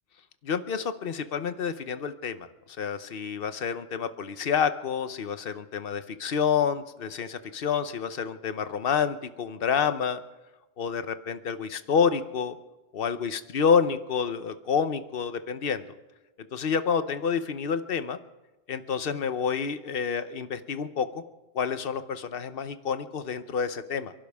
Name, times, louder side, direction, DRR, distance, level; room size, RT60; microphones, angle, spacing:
voice 1, 0.4-10.2 10.8-12.6 12.9-15.8 16.5-18.2 18.7-21.1 21.5-24.1, left 6 dB, 55° left, 11 dB, 1.1 m, -28 dB
28.5 x 11.5 x 3.5 m, 1.1 s
omnidirectional pair, 1.2 m